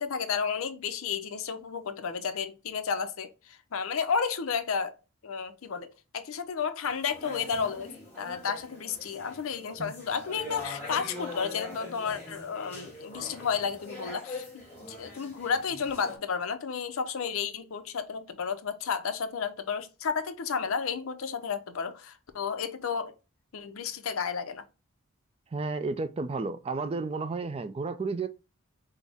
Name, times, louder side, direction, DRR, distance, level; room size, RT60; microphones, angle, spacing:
voice 1, 0.0-4.9 5.2-5.9 6.1-23.1 23.5-24.6, left 6 dB, 70° left, 0.5 m, -32 dB
sound 1, 6.9-16.2, left 2 dB, 10° left, 1.4 m, -43 dB
voice 2, 25.5-28.3, right 3 dB, 25° right, 0.3 m, -32 dB
5.5 x 2.0 x 3.4 m
head